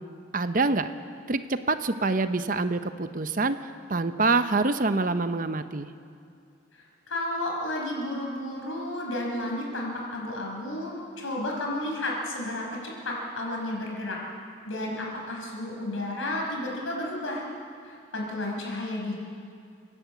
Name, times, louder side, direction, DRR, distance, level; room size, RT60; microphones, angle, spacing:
voice 1, 0.3-0.9 1.3-5.9, right 3 dB, 40° right, 10 dB, 0.8 m, -26 dB
voice 2, 7.1-14.2 14.6-17.4 17.8-19.2, left 1 dB, 90° left, -1 dB, 5.6 m, -32 dB
30.0 x 11.0 x 8.4 m, 2.4 s
head